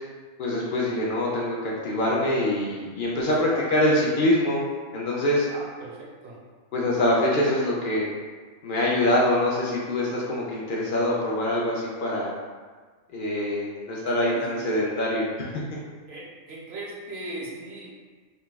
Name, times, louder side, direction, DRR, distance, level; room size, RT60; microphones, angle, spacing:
voice 1, 0.4-4.6 4.9-5.5 6.7-8.1 8.6-12.3 13.1-15.3 15.5-15.6, left 1 dB, 60° left, -4 dB, 0.5 m, -24 dB
voice 2, 3.4-3.8 5.5-6.4 14.2-14.7 16.1-17.9, right 2 dB, 60° right, -4 dB, 0.8 m, -39 dB
3.9 x 2.2 x 2.3 m, 1.5 s
omnidirectional pair, 1.4 m